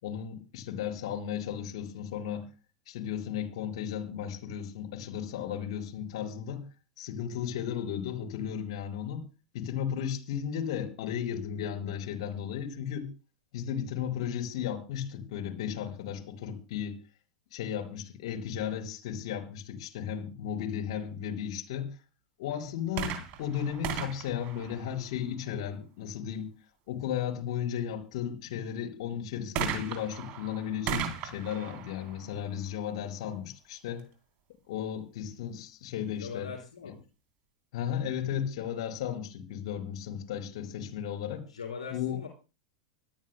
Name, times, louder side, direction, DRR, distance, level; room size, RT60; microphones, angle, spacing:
voice 1, 0.0-2.4 2.9-6.6 7.0-9.2 9.5-13.1 13.5-17.0 17.5-21.9 22.4-26.5 26.9-34.0 34.7-36.5 36.8-36.9 37.7-41.4 41.9-42.2, left 9 dB, 60° left, 4 dB, 4.9 m, -35 dB
sound 1, 22.9-25.5 29.6-33.2 34.0-34.1, right 7 dB, 45° right, 3.5 m, -37 dB
voice 2, 36.2-37.0 41.5-42.3, left 5 dB, 75° left, 0 dB, 3.7 m, -41 dB
25.5 x 13.5 x 2.2 m, 0.32 s
figure-of-eight pair, 90°, 3 cm